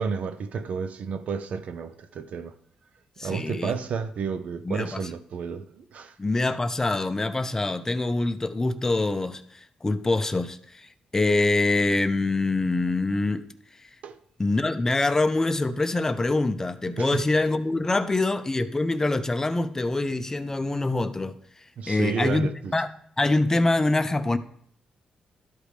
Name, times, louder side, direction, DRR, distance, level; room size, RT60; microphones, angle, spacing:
voice 1, 0.0-2.5 3.2-6.2 14.0-14.2 17.0-17.3 21.8-22.7, right 6 dB, 65° right, 0.6 m, -31 dB
voice 2, 3.2-3.7 4.7-5.0 6.2-13.4 14.4-21.4 21.9-22.9 23.2-24.4, left 2 dB, 20° left, 0.5 m, -25 dB
12.5 x 4.9 x 3.3 m
cardioid pair, 85°, 2 cm